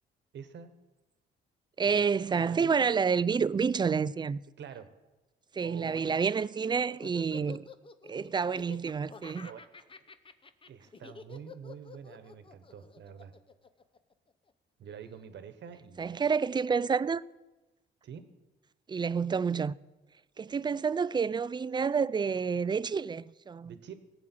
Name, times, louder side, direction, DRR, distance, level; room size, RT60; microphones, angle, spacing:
voice 1, 0.3-0.7 1.8-2.1 2.4-2.9 4.6-4.9 5.6-6.1 9.2-9.6 10.7-13.3 14.8-16.2 18.0-18.2 23.6-24.0, right 8 dB, 65° right, 1.2 m, -46 dB
voice 2, 1.8-4.4 5.5-7.7 8.0-9.5 16.0-17.2 18.9-19.7 20.4-23.7, right 6 dB, 20° right, 0.4 m, -29 dB
Laughter, 6.1-14.5, left 5 dB, 25° left, 0.8 m, -50 dB
18.0 x 7.7 x 4.5 m
cardioid pair, 90°, 20 cm